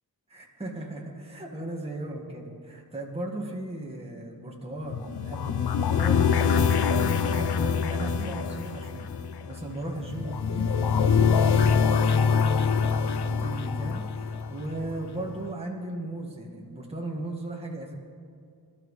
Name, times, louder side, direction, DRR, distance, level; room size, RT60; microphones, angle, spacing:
voice 1, 0.3-9.1 9.4-17.9, right 2 dB, 15° right, -2 dB, 1.9 m, -37 dB
sound 1, 4.9-15.0, left 6 dB, 90° left, 0.7 m, -25 dB
26.0 x 13.0 x 3.3 m, 2.3 s
wide cardioid pair, 135°, 38 cm